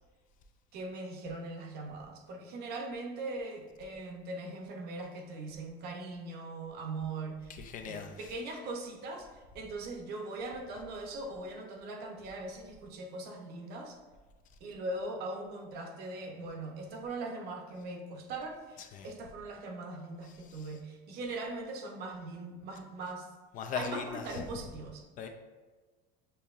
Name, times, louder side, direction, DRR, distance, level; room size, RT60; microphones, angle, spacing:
voice 1, 0.7-14.0 14.6-23.3 23.7-25.1, right 2 dB, 55° right, 2 dB, 0.8 m, -40 dB
voice 2, 7.6-8.2 18.9-19.1 23.5-24.2 25.2-25.3, left 7 dB, 45° left, 6 dB, 0.4 m, -38 dB
6.8 x 2.9 x 2.5 m, 1.3 s
cardioid pair, 145°, 19 cm